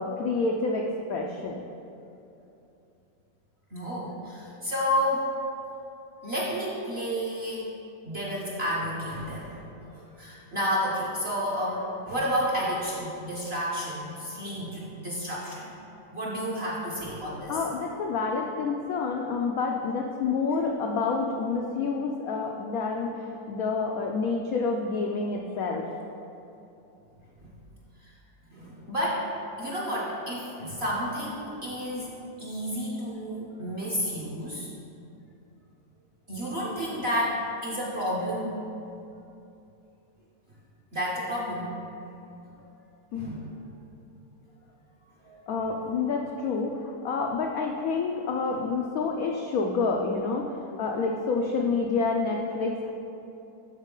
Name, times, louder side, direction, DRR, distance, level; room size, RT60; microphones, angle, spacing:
voice 1, 0.0-1.6 9.9-10.0 17.5-25.9 43.1-43.4 45.5-52.9, left 4 dB, 85° left, 1 dB, 0.7 m, -28 dB
voice 2, 3.7-5.3 6.2-7.7 8.1-9.6 9.9-15.7 16.1-17.6 28.0-28.1 28.5-29.3 29.6-32.1 32.4-34.7 36.3-38.5 40.9-41.7 43.1-43.5 45.2-45.4, equal, 50° right, -5 dB, 0.8 m, -31 dB
11.5 x 4.0 x 3.7 m, 2.8 s
omnidirectional pair, 2.1 m